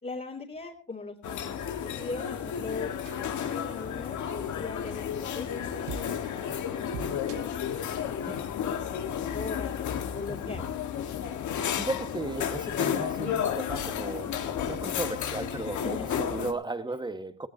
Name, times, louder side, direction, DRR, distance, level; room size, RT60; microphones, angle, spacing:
voice 1, 0.0-2.9 3.5-6.9 7.7-8.5 8.9-9.7 10.1-10.7 15.8-16.1, left 3 dB, 30° left, 3.0 m, -40 dB
sound 1, 1.2-16.5, left 8 dB, 75° left, 1.8 m, -32 dB
sound 2, 2.0-8.5, right 7 dB, 85° right, 1.6 m, -47 dB
voice 2, 10.3-10.7 11.5-17.5, right 2 dB, 15° right, 1.6 m, -36 dB
17.5 x 17.0 x 2.9 m
cardioid pair, 90°, 30 cm